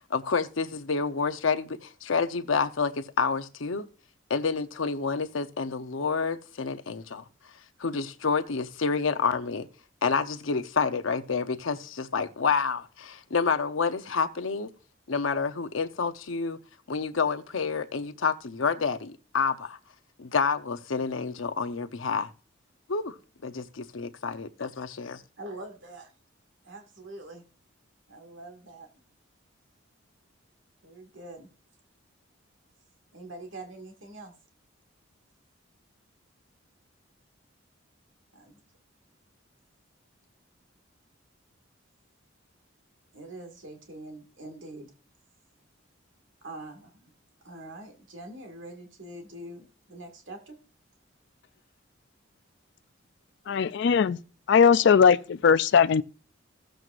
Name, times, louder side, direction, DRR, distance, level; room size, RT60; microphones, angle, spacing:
voice 1, 0.1-3.9 4.3-7.2 7.8-9.7 10.0-14.7 15.1-16.6 16.9-19.8 20.2-22.3 22.9-23.2 23.4-25.2, left 5 dB, 85° left, 0.8 m, -28 dB
voice 2, 25.4-26.1 26.6-27.4 28.1-29.0 30.8-31.5 33.1-34.3 38.3-38.6 43.1-44.9 46.4-47.1 47.4-50.6, right 2 dB, 75° right, 1.9 m, -44 dB
voice 3, 53.5-54.2 54.5-56.0, left 6 dB, 60° left, 0.4 m, -19 dB
15.5 x 7.8 x 2.5 m
head